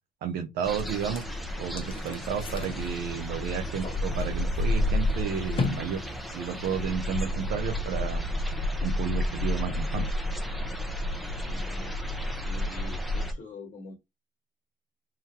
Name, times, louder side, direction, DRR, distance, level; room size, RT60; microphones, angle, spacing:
voice 1, 0.2-1.2 1.6-6.0 6.3-8.2 8.8-10.2, right 8 dB, 75° right, 0.8 m, -32 dB
sound 1, 0.6-7.2, left 4 dB, 30° left, 1.1 m, -39 dB
sound 2, 0.6-13.3, left 1 dB, ahead, 0.7 m, -31 dB
voice 2, 11.2-12.0 12.4-13.9, left 3 dB, 50° left, 1.3 m, -45 dB
3.8 x 3.1 x 2.9 m
cardioid pair, 110°, 17 cm